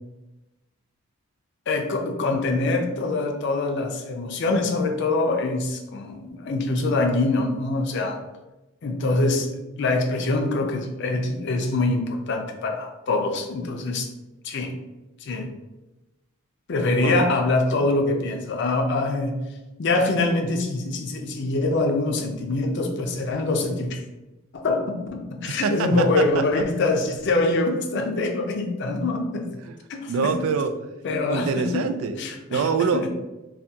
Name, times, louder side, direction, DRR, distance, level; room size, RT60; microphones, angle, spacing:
voice 1, 1.7-8.2 8.8-9.5 9.8-14.1 14.4-14.7 15.2-15.5 16.7-19.3 19.8-24.0 24.5-29.5 29.9-30.3 31.0-31.8 32.2-32.7 32.9-33.1, left 2 dB, 60° left, 4 dB, 0.5 m, -24 dB
voice 2, 25.5-26.6 29.7-29.8 30.1-30.7 31.3-32.2 32.5-33.1, right 5 dB, 80° right, 9 dB, 0.3 m, -25 dB
2.7 x 2.3 x 3.4 m, 1.0 s
head